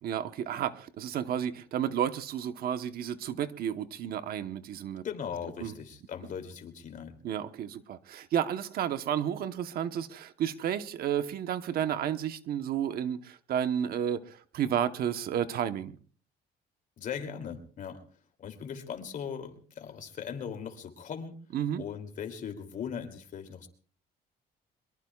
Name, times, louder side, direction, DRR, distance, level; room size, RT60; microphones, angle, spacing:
voice 1, 0.0-5.0 5.6-5.7 7.2-16.0 21.5-21.8, right 9 dB, 65° right, 1.1 m, -32 dB
voice 2, 5.0-7.2 17.0-18.0 18.4-21.4 21.7-23.7, left 7 dB, 50° left, 2.9 m, -39 dB
23.5 x 22.0 x 2.4 m
cardioid pair, 110°, 17 cm